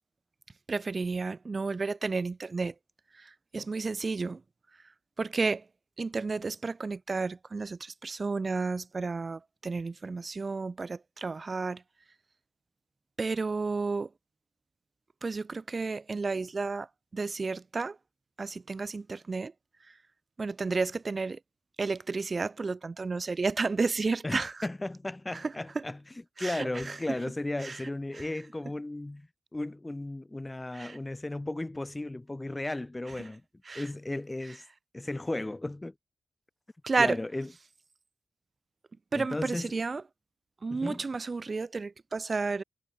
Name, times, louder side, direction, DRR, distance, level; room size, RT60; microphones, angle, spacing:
voice 1, 0.7-2.7 3.1-4.4 5.2-5.7 6.0-11.8 13.2-14.1 15.2-16.9 17.1-18.0 18.4-19.5 19.9-20.0 20.4-21.4 21.8-24.7 25.3-25.8 26.4-27.2 27.6-27.8 28.1-28.3 30.7-31.0 33.7-33.9 34.5-34.6 36.8-37.2 39.1-40.0 40.6-42.6, right 4 dB, 40° right, 0.9 m, -32 dB
voice 2, 24.2-26.0 26.4-33.4 33.7-34.7 34.9-35.9 37.0-37.5 39.1-39.7 40.7-41.0, left 2 dB, 15° left, 0.3 m, -35 dB
cardioid pair, 75°, 0 cm